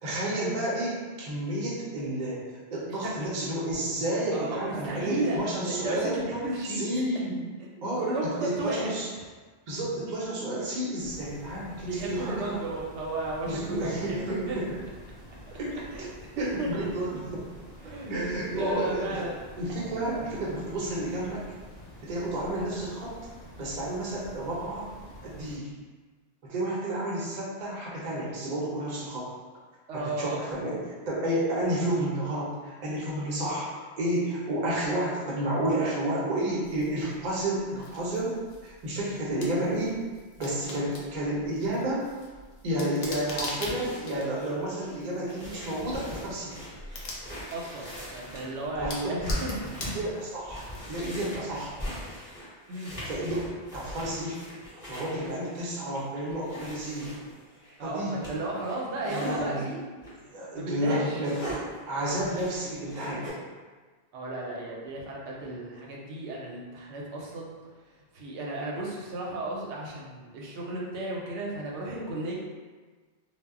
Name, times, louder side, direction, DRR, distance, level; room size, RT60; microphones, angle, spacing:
voice 1, 0.0-2.4 2.7-6.3 6.6-7.4 7.8-9.1 9.7-12.6 13.5-14.7 15.6-16.1 16.4-17.4 18.1-19.2 19.6-21.4 22.0-24.9 25.2-25.7 26.4-29.3 29.9-33.7 34.0-40.0 40.4-42.1 42.6-46.6 48.8-49.5 49.8-51.8 53.1-54.4 54.9-57.1 57.8-58.1 59.1-59.7 60.3-61.6 61.9-63.3, right 1 dB, 50° right, -5 dB, 0.7 m, -31 dB
voice 2, 4.3-5.4 5.6-6.8 7.6-8.9 11.8-14.6 15.9-16.1 16.4-16.7 17.8-19.3 29.9-30.4 47.5-49.6 52.7-52.9 57.8-59.8 60.5-61.2 64.1-67.5 68.1-72.4, right 2 dB, 85° right, -3 dB, 0.9 m, -34 dB
sound 1, 11.0-25.6, equal, 50° left, 0.7 m, -48 dB
sound 2, 36.6-51.2, left 1 dB, 80° left, 0.9 m, -42 dB
sound 3, 43.3-59.4 60.0-60.2 60.6-63.3, equal, 15° left, 1.0 m, -42 dB
2.1 x 2.0 x 3.5 m, 1.4 s
omnidirectional pair, 1.1 m